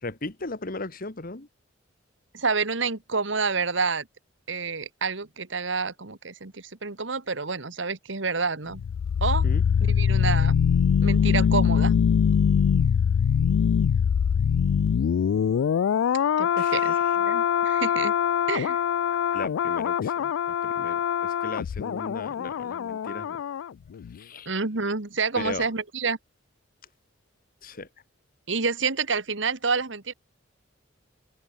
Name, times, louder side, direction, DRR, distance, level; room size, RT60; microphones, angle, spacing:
voice 1, 0.0-1.5 9.4-9.6 16.6-17.1 19.3-20.3 20.6-23.4 24.1-24.5 25.3-25.7 27.6-27.9, left 2 dB, 50° left, 1.7 m, -37 dB
voice 2, 2.3-4.1 4.5-8.8 9.2-9.4 9.9-10.6 11.0-11.9 16.4-18.1 18.5-18.8 24.4-26.2 28.5-30.1, right 4 dB, 65° right, 1.8 m, -28 dB
sound 1, 8.7-23.7 24.0-24.1, left 7 dB, 90° left, 0.3 m, -23 dB
open air
head